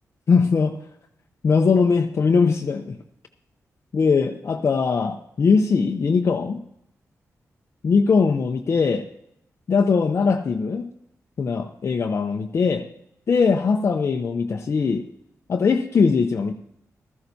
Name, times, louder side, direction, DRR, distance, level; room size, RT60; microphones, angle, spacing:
voice 1, 0.3-0.7 1.4-3.0 3.9-6.6 7.8-9.1 9.7-10.8 11.4-12.8 13.3-15.0 15.5-16.5, left 5 dB, 50° left, 3 dB, 0.7 m, -20 dB
15.5 x 13.5 x 2.8 m, 0.75 s
wide cardioid pair, 140°, 6 cm